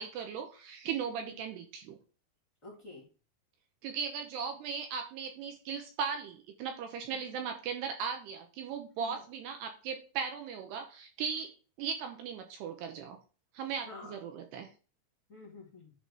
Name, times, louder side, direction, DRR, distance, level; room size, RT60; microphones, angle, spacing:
voice 1, 0.0-2.0 3.8-11.5 11.8-13.2 13.5-14.7, right 6 dB, 75° right, 5 dB, 2.7 m, -38 dB
voice 2, 2.6-3.1 7.1-7.2 9.0-9.2 13.9-14.2 15.3-15.9, left 3 dB, 25° left, -3 dB, 1.9 m, -49 dB
10.5 x 4.1 x 4.8 m, 0.37 s
omnidirectional pair, 5.4 m